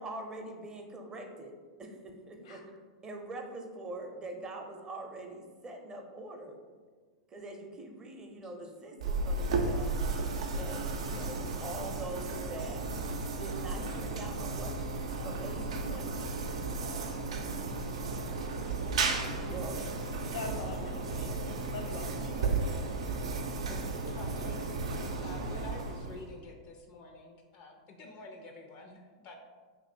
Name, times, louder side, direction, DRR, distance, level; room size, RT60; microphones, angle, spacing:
voice 1, 0.0-1.5 1.8-2.6 3.0-6.6 7.3-10.0 10.5-12.9 13.3-14.8 15.2-16.2 19.5-19.9, right 2 dB, 20° right, 3 dB, 0.6 m, -43 dB
sound 1, 9.0-26.4, right 3 dB, 75° right, 0.5 m, -34 dB
voice 2, 19.1-19.6 20.3-22.6, left 3 dB, 75° left, 2 dB, 0.8 m, -44 dB
voice 3, 24.1-29.3, left 2 dB, 45° left, 4 dB, 0.4 m, -49 dB
3.0 x 2.6 x 4.3 m, 1.5 s
hypercardioid pair, 100°, 3 cm